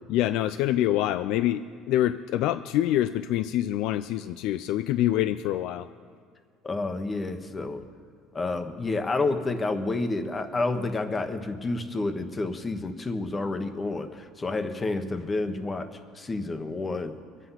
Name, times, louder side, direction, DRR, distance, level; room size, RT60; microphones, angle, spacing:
voice 1, 0.1-5.9, left 13 dB, 70° left, 12 dB, 0.4 m, -26 dB
voice 2, 6.6-7.8 8.3-15.9 16.2-17.2, left 3 dB, 20° left, 8 dB, 1.2 m, -29 dB
23.5 x 8.1 x 5.8 m, 2.2 s
supercardioid pair, 110°, 0 cm